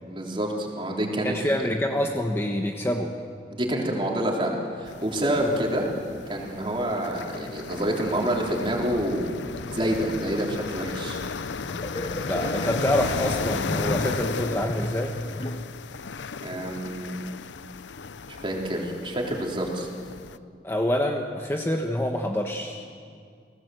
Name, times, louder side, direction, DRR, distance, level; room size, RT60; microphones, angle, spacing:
voice 1, 0.1-1.5 3.5-5.9 6.3-9.3 9.7-11.2 16.4-17.1 18.3-19.9, right 1 dB, 30° right, -1 dB, 3.8 m, -27 dB
voice 2, 1.2-3.1 12.2-15.1 20.6-22.8, left 1 dB, 15° left, 2 dB, 1.2 m, -26 dB
sound 1, 4.9-20.4, left 4 dB, 80° left, 0.6 m, -35 dB
sound 2, 11.7-15.9, left 1 dB, 30° left, 0.9 m, -33 dB
30.0 x 18.5 x 7.9 m, 2.2 s
head